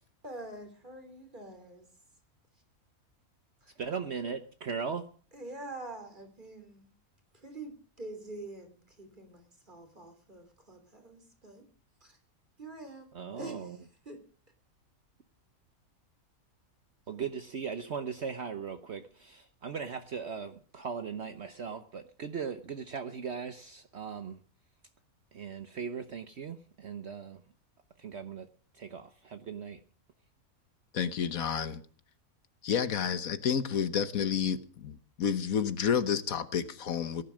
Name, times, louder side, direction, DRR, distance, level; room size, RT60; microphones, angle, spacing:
voice 1, 0.2-1.9 3.6-3.7 5.3-6.9 7.3-11.7 12.0-12.2 12.6-13.1 13.4-13.8 14.0-14.2, right 2 dB, 35° right, 3.4 m, -45 dB
voice 2, 3.8-5.1 13.1-13.8 17.1-24.4 25.3-27.4 28.0-28.5 28.7-29.8, right 6 dB, 55° right, 1.1 m, -38 dB
voice 3, 30.9-31.8 32.6-37.2, left 7 dB, 75° left, 1.5 m, -30 dB
17.5 x 11.0 x 6.4 m
omnidirectional pair, 1.5 m